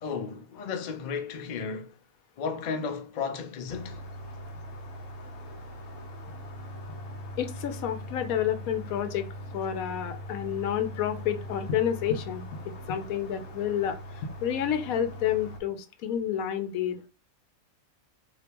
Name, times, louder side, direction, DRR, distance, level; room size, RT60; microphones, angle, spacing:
voice 1, 0.0-1.9 2.4-4.0, left 5 dB, 70° left, 0.4 m, -34 dB
sound 1, 3.7-15.6, equal, 50° left, 0.8 m, -41 dB
voice 2, 7.4-9.3 9.5-12.5 12.9-17.1, left 9 dB, 85° left, 1.0 m, -29 dB
3.4 x 2.8 x 2.9 m
omnidirectional pair, 1.4 m